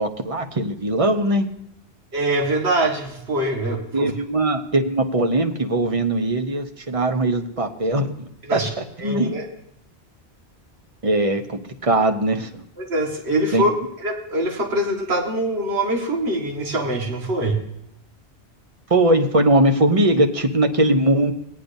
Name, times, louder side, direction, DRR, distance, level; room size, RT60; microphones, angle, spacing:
voice 1, 0.0-1.5 3.9-8.6 9.0-9.4 11.0-12.6 13.5-13.7 18.9-21.3, right 1 dB, 35° right, 6 dB, 0.9 m, -20 dB
voice 2, 2.1-4.1 8.4-8.7 9.0-9.5 12.8-13.7 14.0-17.6, right 1 dB, 65° right, 0 dB, 2.0 m, -23 dB
17.5 x 10.0 x 2.7 m, 0.79 s
omnidirectional pair, 1.2 m